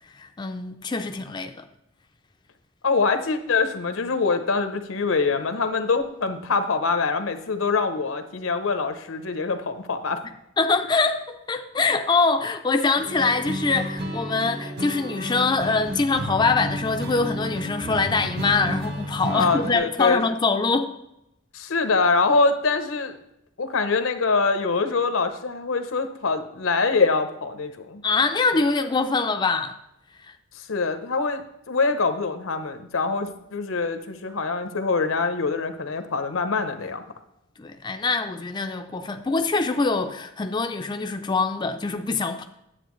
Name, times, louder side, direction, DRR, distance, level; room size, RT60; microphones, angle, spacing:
voice 1, 0.1-1.6 10.6-20.9 28.0-29.7 30.3-30.4 37.6-42.4, left 4 dB, 20° left, 0.4 m, -24 dB
voice 2, 2.8-10.2 19.3-20.3 21.5-23.2 23.6-28.0 30.6-37.0, left 4 dB, 80° left, 0.8 m, -24 dB
sound 1, 13.0-19.7, equal, 50° right, 1.0 m, -32 dB
10.0 x 7.6 x 3.1 m
head